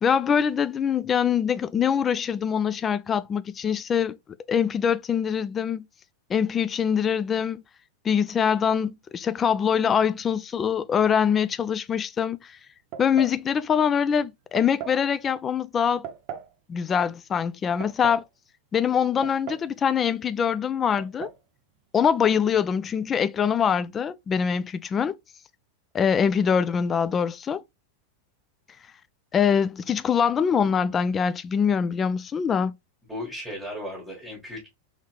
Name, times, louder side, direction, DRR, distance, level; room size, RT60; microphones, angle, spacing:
voice 1, 0.0-4.2 4.5-5.8 6.3-7.6 8.0-12.6 13.0-16.1 16.7-18.2 18.7-21.3 21.9-25.2 25.9-27.6 29.3-32.7, left 7 dB, 20° left, 0.3 m, -24 dB
sound 1, 12.9-13.4 14.6-15.0 16.0-16.5 17.6-18.3 19.2-19.8 20.0-20.1 21.0-21.4, right 8 dB, 35° right, 0.8 m, -38 dB
voice 2, 33.1-34.7, left 1 dB, 5° right, 1.6 m, -35 dB
3.6 x 3.4 x 3.2 m
figure-of-eight pair, 90°, 0 cm